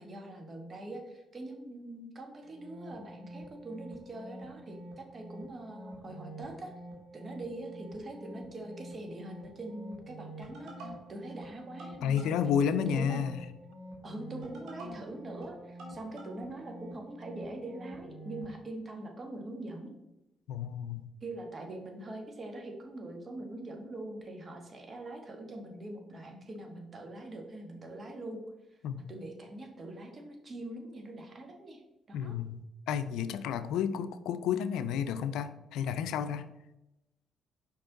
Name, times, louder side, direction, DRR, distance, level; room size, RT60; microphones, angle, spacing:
voice 1, 0.0-6.7 7.1-12.4 12.9-13.2 14.0-19.9 21.2-28.4 29.1-31.8 32.1-32.4, right 2 dB, 40° right, 3 dB, 1.3 m, -43 dB
sound 1, 2.4-18.5, right 1 dB, 80° right, 1.7 m, -47 dB
voice 2, 12.0-13.4 20.5-21.1 28.8-29.1 32.1-36.5, left 8 dB, 90° left, 12 dB, 0.4 m, -31 dB
5.2 x 4.7 x 3.8 m, 0.92 s
cardioid pair, 90°, 0 cm